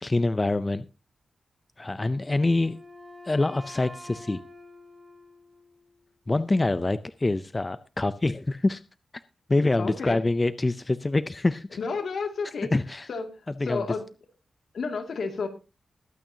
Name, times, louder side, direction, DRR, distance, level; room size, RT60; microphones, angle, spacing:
voice 1, 0.0-0.9 1.8-2.8 3.2-4.4 6.3-8.8 9.5-11.7 12.7-13.1 13.6-13.8, left 2 dB, 20° left, 13 dB, 0.5 m, -25 dB
Wind instrument woodwind instrument, 2.1-6.0, left 1 dB, 15° right, 3.6 m, -47 dB
voice 2, 9.8-10.2 11.8-12.7 13.1-13.3 13.6-14.0 14.7-15.5, left 4 dB, 70° left, 5 dB, 2.3 m, -31 dB
21.5 x 8.9 x 2.8 m, 0.30 s
wide cardioid pair, 130°, 0 cm